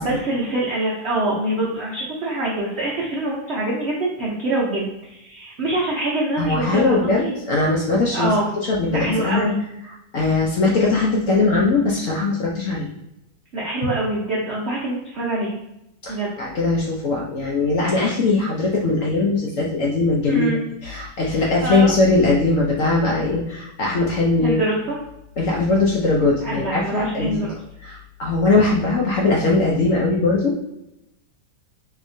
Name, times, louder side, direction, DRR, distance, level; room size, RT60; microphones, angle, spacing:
voice 1, 0.0-7.3 8.1-8.5 8.9-9.6 13.5-15.6 16.1-16.3 20.3-20.6 21.2-21.9 24.4-25.0 26.4-27.6, right 2 dB, 70° right, -4 dB, 0.6 m, -25 dB
voice 2, 6.4-8.3 8.7-9.5 10.1-12.9 16.0-20.5 20.8-24.6 25.4-27.3 27.8-30.6, left 3 dB, 65° left, -3 dB, 0.8 m, -20 dB
4.0 x 2.9 x 2.6 m, 0.85 s
omnidirectional pair, 2.0 m